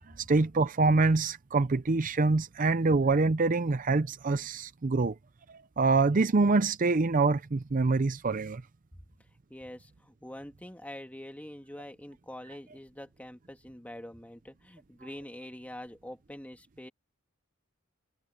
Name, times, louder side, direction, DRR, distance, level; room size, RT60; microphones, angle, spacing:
voice 1, 0.2-5.1 5.5-8.6, right 3 dB, 40° right, 0.6 m, -25 dB
voice 2, 9.5-16.9, left 1 dB, 5° left, 1.8 m, -45 dB
head